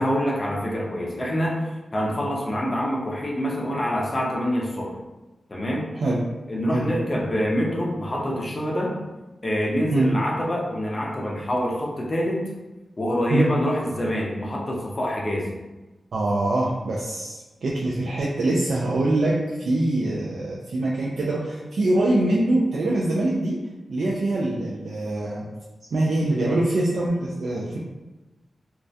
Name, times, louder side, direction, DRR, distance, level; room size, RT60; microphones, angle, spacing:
voice 1, 0.0-1.6 1.9-4.9 5.5-5.9 6.5-8.9 9.4-12.5 13.0-15.5, equal, 30° left, -3 dB, 0.4 m, -25 dB
voice 2, 16.1-23.6 23.9-25.5 25.9-27.8, right 2 dB, 85° right, -5 dB, 0.3 m, -24 dB
2.3 x 2.1 x 2.6 m, 1.1 s
wide cardioid pair, 165°, 0 cm